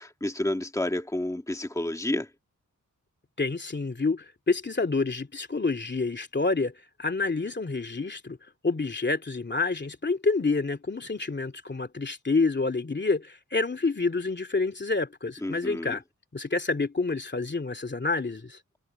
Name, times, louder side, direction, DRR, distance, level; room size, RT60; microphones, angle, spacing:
voice 1, 0.0-2.3 15.4-16.0, left 1 dB, 10° left, 2.0 m, -30 dB
voice 2, 3.4-6.7 7.0-8.4 8.6-16.0 16.3-18.6, left 3 dB, 35° left, 2.7 m, -28 dB
wide cardioid pair, 85°, 31 cm